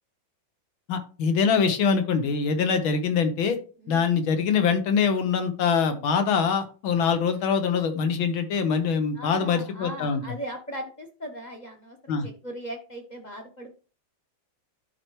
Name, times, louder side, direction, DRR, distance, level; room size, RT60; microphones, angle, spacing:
voice 1, 0.9-3.6 3.9-10.2 12.1-12.3, left 6 dB, 80° left, 7 dB, 1.8 m, -24 dB
voice 2, 9.1-13.8, equal, 30° left, 3 dB, 0.9 m, -38 dB
12.0 x 4.6 x 3.1 m, 0.36 s
omnidirectional pair, 2.2 m